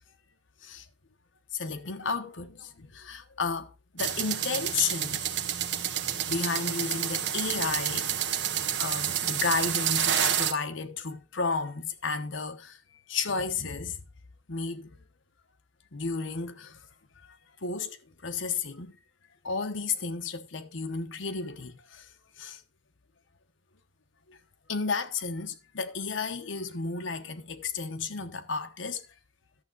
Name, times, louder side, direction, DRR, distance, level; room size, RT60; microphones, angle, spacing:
voice 1, 1.5-5.2 6.3-8.2 8.8-12.8 13.1-14.0 14.5-14.9 15.9-16.8 17.2-17.4 17.6-18.0 18.2-19.0 19.4-22.1 22.4-22.6 24.3-24.4 24.7-29.0, left 4 dB, 85° left, 1.1 m, -32 dB
sound 1, 4.0-10.5, right 9 dB, 65° right, 1.0 m, -29 dB
11.5 x 7.3 x 4.0 m
head